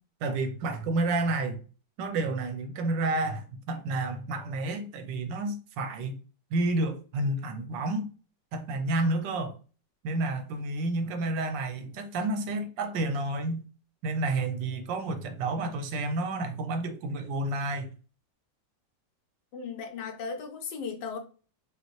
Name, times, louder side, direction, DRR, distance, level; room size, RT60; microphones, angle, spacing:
voice 1, 0.2-1.6 2.0-6.2 6.5-8.1 8.5-9.5 10.0-13.6 14.0-17.9, right 2 dB, 85° right, 1.4 m, -30 dB
voice 2, 19.5-21.2, left 5 dB, 75° left, 1.4 m, -36 dB
5.1 x 2.5 x 3.1 m
omnidirectional pair, 2.0 m